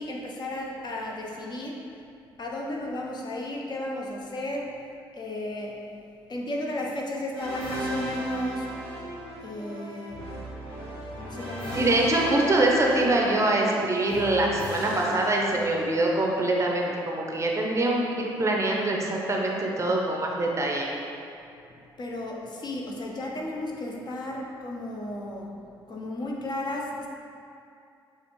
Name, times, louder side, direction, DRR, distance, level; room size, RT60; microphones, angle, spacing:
voice 1, 0.0-1.8 2.4-4.8 5.1-5.8 6.3-8.7 9.4-10.3 11.2-11.8 12.2-12.7 22.0-25.5 25.9-27.1, left 1 dB, 35° left, -2 dB, 0.7 m, -33 dB
sound 1, 7.3-16.2, equal, 85° left, 1.2 m, -37 dB
voice 2, 11.7-20.9, right 1 dB, 25° right, -1 dB, 0.6 m, -24 dB
6.7 x 2.5 x 3.0 m, 2.6 s
figure-of-eight pair, 45°, 12 cm